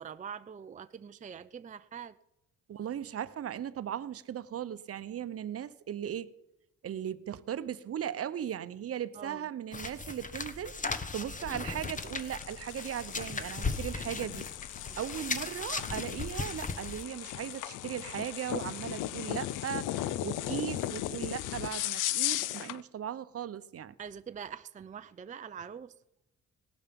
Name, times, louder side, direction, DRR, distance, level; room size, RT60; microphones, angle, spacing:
voice 1, 0.0-2.2 9.1-9.4 24.0-25.9, right 7 dB, 25° right, 0.5 m, -44 dB
voice 2, 2.7-6.3 6.8-14.5 15.0-23.9, right 10 dB, 50° right, 0.8 m, -38 dB
sound 1, 9.7-17.0, left 4 dB, 25° left, 1.2 m, -37 dB
sound 2, 11.8-22.8, left 14 dB, 90° left, 0.6 m, -37 dB
18.5 x 12.0 x 5.3 m
cardioid pair, 90°, 30 cm